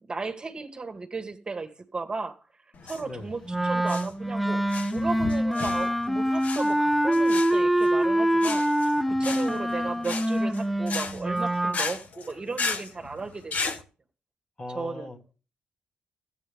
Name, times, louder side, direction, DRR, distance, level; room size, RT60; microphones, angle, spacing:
voice 1, 0.1-2.4 2.8-4.6 4.9-13.6 14.7-15.1, right 4 dB, 30° right, 1.7 m, -35 dB
sound 1, 2.7-13.8, left 4 dB, 50° left, 1.3 m, -35 dB
Wind instrument woodwind instrument, 3.5-11.8, right 1 dB, ahead, 0.7 m, -25 dB
voice 2, 14.6-15.3, left 1 dB, 25° left, 1.9 m, -39 dB
14.5 x 8.7 x 3.6 m
cardioid pair, 85°, 3 cm